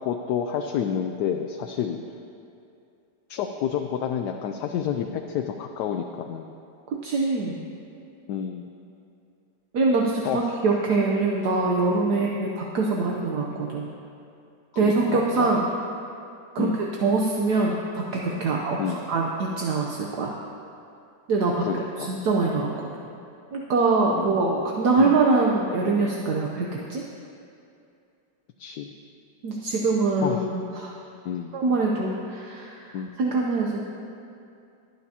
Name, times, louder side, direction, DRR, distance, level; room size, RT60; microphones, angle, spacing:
voice 1, 0.0-2.0 3.3-6.5 8.3-8.7 10.2-10.4 12.1-12.4 13.5-13.7 14.8-15.5 16.6-16.8 18.8-19.0 21.6-22.1 24.2-24.4 25.0-25.2 28.6-28.9 30.2-30.4 31.2-31.6 32.9-33.1, left 8 dB, 75° left, 4 dB, 1.1 m, -29 dB
voice 2, 6.9-7.6 9.7-13.9 14.8-15.7 16.5-16.7 17.0-20.3 21.3-21.6 22.0-22.9 23.5-27.1 29.4-30.9 31.5-33.8, right 3 dB, 65° right, -1 dB, 1.4 m, -24 dB
21.0 x 9.5 x 2.9 m, 2.5 s
omnidirectional pair, 1.9 m